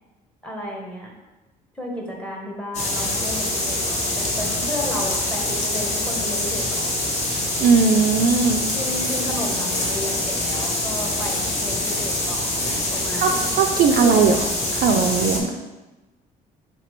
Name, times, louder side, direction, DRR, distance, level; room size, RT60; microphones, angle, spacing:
voice 1, 0.4-1.1 1.7-7.0 8.7-12.7 12.9-13.4 14.0-14.4, left 1 dB, 5° left, -1 dB, 0.9 m, -32 dB
sound 1, 2.7-15.4, left 1 dB, 45° left, 0.9 m, -25 dB
voice 2, 7.6-8.6 12.9-14.4 14.7-15.5, right 5 dB, 60° right, 5 dB, 0.4 m, -19 dB
sound 2, 9.0-9.4 9.7-10.1 10.5-10.8 11.1-12.2 12.6-13.0 13.3-14.4, left 1 dB, 70° left, 1.2 m, -35 dB
3.3 x 3.0 x 4.4 m, 1.1 s
cardioid pair, 110°, 17 cm